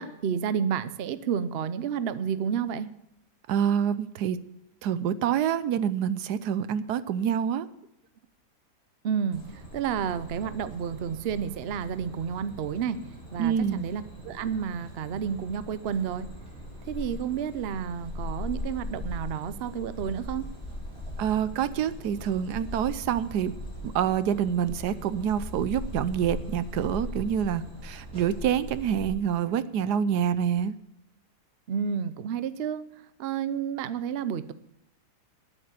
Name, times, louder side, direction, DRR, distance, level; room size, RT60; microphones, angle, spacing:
voice 1, 0.0-2.9 9.0-9.4 9.7-13.0 13.3-16.3 16.9-20.5 31.7-32.8 33.2-34.5, right 7 dB, 60° right, 14 dB, 0.6 m, -30 dB
voice 2, 3.5-4.4 4.8-7.7 13.4-13.9 21.2-23.5 23.9-30.7, right 9 dB, 75° right, 15 dB, 1.2 m, -27 dB
sound 1, 9.3-29.1, left 1 dB, 5° left, 5.8 m, -40 dB
10.0 x 8.4 x 8.2 m, 0.83 s
omnidirectional pair, 1.8 m